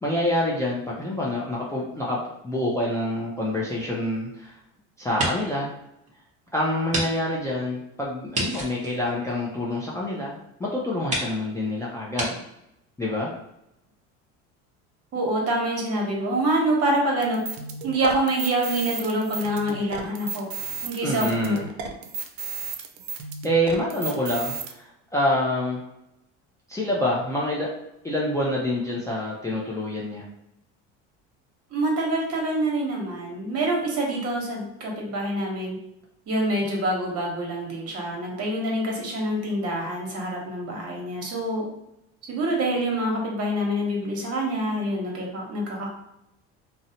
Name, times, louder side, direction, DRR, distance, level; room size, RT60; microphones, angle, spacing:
voice 1, 0.0-4.6 5.0-5.7 6.5-12.4 13.0-13.3 21.0-21.7 23.4-24.8 25.1-25.8 26.7-27.7 28.0-30.3, left 1 dB, 10° left, -5 dB, 0.5 m, -26 dB
sound 1, 3.7-4.6 5.0-5.6 6.0-6.1 6.9-7.1 7.3-7.4 8.3-9.9 10.6-10.7 11.1-11.3 12.1-12.3, right 1 dB, 20° right, 0.9 m, -30 dB
voice 2, 15.1-17.4 17.8-21.6 31.7-35.8 36.3-41.6 42.3-45.9, right 1 dB, 45° right, -1 dB, 1.0 m, -26 dB
sound 2, 17.2-24.7, right 5 dB, 80° right, 0.5 m, -34 dB
2.6 x 2.1 x 2.8 m, 0.83 s
supercardioid pair, 90°, 35 cm